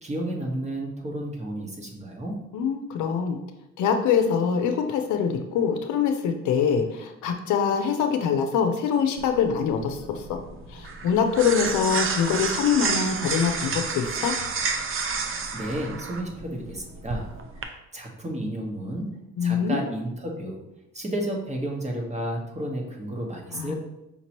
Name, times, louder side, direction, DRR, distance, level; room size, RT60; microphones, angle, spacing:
voice 1, 0.0-2.4 15.2-17.3 17.5-19.1 19.4-20.6 20.9-23.7, right 1 dB, 25° right, 0 dB, 1.2 m, -32 dB
voice 2, 2.5-3.4 3.8-10.4 10.7-14.3 19.4-19.8 23.5-23.7, left 7 dB, 80° left, 5 dB, 0.6 m, -24 dB
sound 1, 9.2-17.6, right 4 dB, 45° right, 0.6 m, -30 dB
5.7 x 3.0 x 2.9 m, 0.90 s
supercardioid pair, 70°, 30 cm